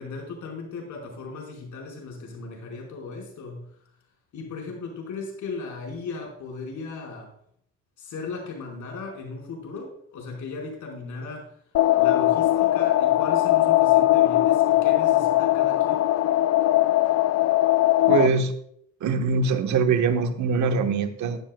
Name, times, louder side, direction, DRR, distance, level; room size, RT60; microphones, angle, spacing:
voice 1, 0.0-3.7 4.3-7.3 8.0-11.5 12.0-16.0, left 4 dB, 75° left, 0 dB, 4.7 m, -37 dB
sound 1, 11.7-18.3, left 14 dB, 55° left, 0.5 m, -20 dB
voice 2, 18.1-18.5 19.0-21.4, right 5 dB, 75° right, 6 dB, 1.2 m, -23 dB
15.0 x 10.5 x 2.3 m, 0.68 s
cardioid pair, 90°, 30 cm